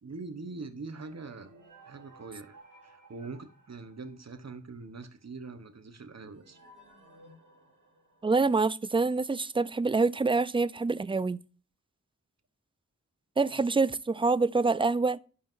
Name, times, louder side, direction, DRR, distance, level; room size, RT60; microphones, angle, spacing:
voice 1, 0.0-1.5 1.9-2.6 2.8-6.6, right 3 dB, 55° right, 1.0 m, -43 dB
sound 1, 1.0-4.7 6.3-8.9, right 2 dB, 80° right, 2.0 m, -57 dB
voice 2, 8.2-11.4 13.4-15.2, right 3 dB, 15° right, 0.3 m, -26 dB
11.5 x 5.5 x 2.6 m
wide cardioid pair, 50°, 32 cm